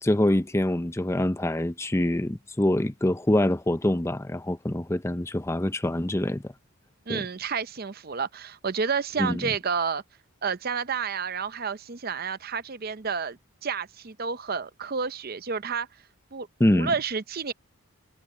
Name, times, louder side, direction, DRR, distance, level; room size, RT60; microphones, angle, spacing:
voice 1, 0.0-6.5 7.1-7.2 9.2-9.4 16.6-16.9, left 1 dB, 10° left, 0.5 m, -25 dB
voice 2, 7.1-10.0 10.4-15.9 16.3-17.5, right 5 dB, 45° right, 0.6 m, -30 dB
head